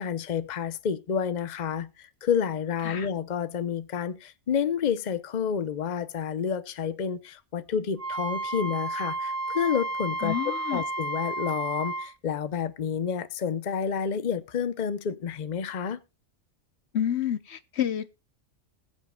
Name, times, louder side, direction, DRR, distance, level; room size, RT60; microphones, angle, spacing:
voice 1, 0.0-16.0, left 7 dB, 45° left, 0.8 m, -29 dB
Wind instrument woodwind instrument, 8.0-12.1, right 2 dB, 75° right, 4.1 m, -32 dB
voice 2, 10.2-10.8 16.9-18.1, left 10 dB, 65° left, 1.0 m, -29 dB
21.0 x 8.0 x 2.3 m
omnidirectional pair, 1.2 m